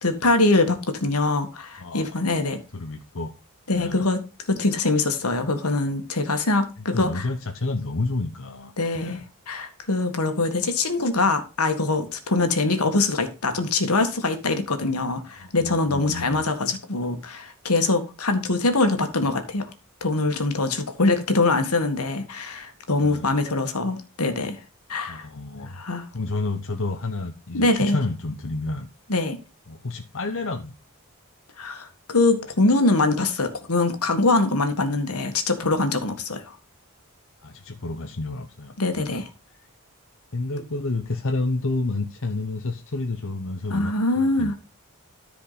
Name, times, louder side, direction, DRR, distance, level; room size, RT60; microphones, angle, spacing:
voice 1, 0.0-2.6 3.7-4.2 4.5-7.3 8.8-19.7 20.0-24.6 24.9-25.3 25.7-26.1 27.5-28.0 29.1-29.4 31.6-36.5 38.8-39.3 43.7-44.6, left 2 dB, 75° left, 1.8 m, -23 dB
voice 2, 1.8-2.1 2.7-3.3 3.7-4.1 6.8-9.2 15.4-16.5 23.0-23.4 25.1-25.8 26.1-28.9 29.7-30.7 37.4-39.2 39.6-39.7 40.3-44.6, left 2 dB, 60° left, 1.0 m, -30 dB
13.5 x 5.0 x 4.1 m
head